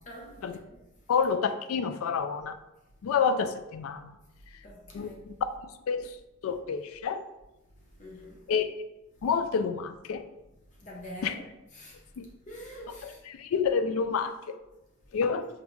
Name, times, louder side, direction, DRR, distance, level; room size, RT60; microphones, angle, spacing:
voice 1, 0.0-0.8 4.6-5.2 7.9-8.5 10.7-11.4 11.7-13.2 15.3-15.5, equal, 35° left, 0.7 m, -46 dB
voice 2, 1.1-2.6 3.0-4.1 4.9-5.4 5.9-6.2 6.4-7.2 8.5-8.7 9.2-10.2 11.2-11.3 12.2-12.3 13.3-14.3 15.1-15.4, left 6 dB, 75° left, 0.3 m, -28 dB
5.3 x 2.4 x 3.0 m
head